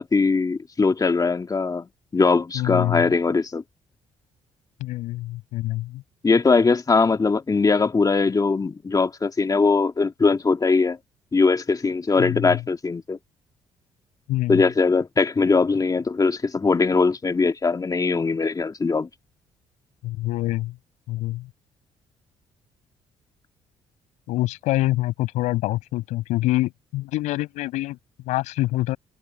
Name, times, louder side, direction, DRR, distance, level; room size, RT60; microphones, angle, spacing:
voice 1, 0.0-3.6 6.2-11.0 11.3-13.2 14.5-19.1, left 4 dB, 30° left, 2.4 m, -21 dB
voice 2, 2.5-3.1 4.8-6.0 12.2-12.6 14.3-14.6 20.0-20.7 21.1-21.5 24.3-28.0 28.2-29.0, left 17 dB, 85° left, 6.9 m, -25 dB
supercardioid pair, 65°, 12 cm